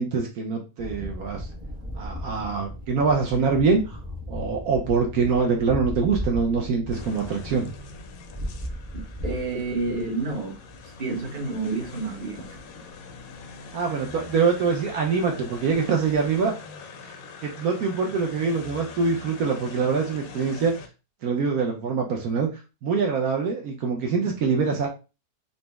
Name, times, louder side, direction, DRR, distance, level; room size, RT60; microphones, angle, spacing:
voice 1, 0.0-1.5 1.9-4.0 4.3-7.7 13.7-16.5 17.0-17.1 17.4-20.7 21.2-22.5 22.8-24.9, right 5 dB, 70° right, 1.1 m, -24 dB
sound 1, 0.8-16.4, equal, 10° right, 0.6 m, -37 dB
sound 2, 6.9-20.9, left 4 dB, 70° left, 0.9 m, -43 dB
voice 2, 8.9-12.6, right 3 dB, 35° right, 1.0 m, -30 dB
4.0 x 2.1 x 3.4 m
omnidirectional pair, 1.7 m